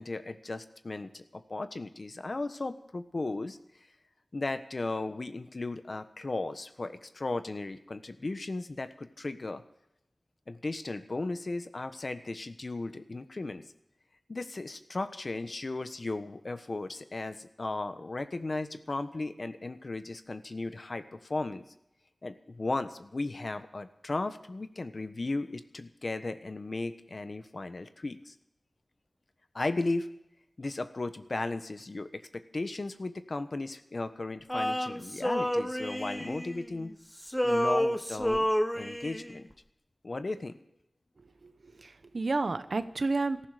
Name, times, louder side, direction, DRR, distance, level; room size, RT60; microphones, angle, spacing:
voice 1, 0.0-3.6 4.3-9.6 10.5-13.6 14.3-21.6 22.2-28.3 29.5-30.1 30.6-36.9 37.4-38.5 38.7-39.5 40.0-40.5, left 2 dB, 55° left, 10 dB, 1.2 m, -36 dB
Male singing, 34.5-36.9 37.2-39.4, equal, 5° left, 1.0 m, -30 dB
voice 2, 41.4-43.5, right 3 dB, 70° right, 11 dB, 1.0 m, -31 dB
18.0 x 14.5 x 5.0 m, 0.81 s
wide cardioid pair, 75°, 0 cm